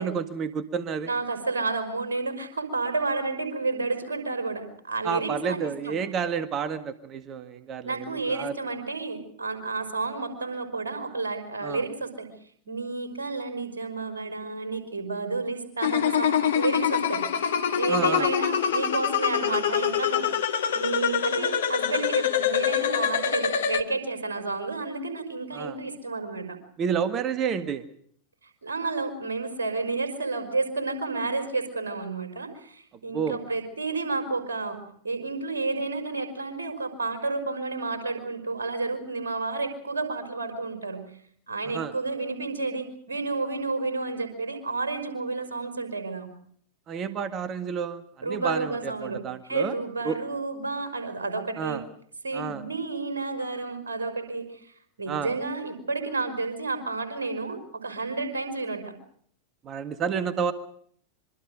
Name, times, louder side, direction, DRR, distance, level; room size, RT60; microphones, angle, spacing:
voice 1, 0.0-1.1 5.0-8.5 11.6-11.8 17.9-18.3 25.5-25.8 26.8-27.8 33.1-33.4 41.7-41.9 46.9-49.7 50.0-50.2 51.6-51.8 52.3-52.6 55.1-55.3 59.6-60.5, right 7 dB, 30° right, 12 dB, 1.7 m, -30 dB
voice 2, 1.0-6.0 7.8-12.3 12.7-17.3 17.8-26.6 28.6-41.0 41.5-46.3 48.2-51.8 52.2-58.9, right 3 dB, 70° right, 7 dB, 5.3 m, -31 dB
sound 1, 15.8-23.8, left 8 dB, 60° left, 1.7 m, -25 dB
26.5 x 24.5 x 5.1 m, 0.63 s
figure-of-eight pair, 90°, 0 cm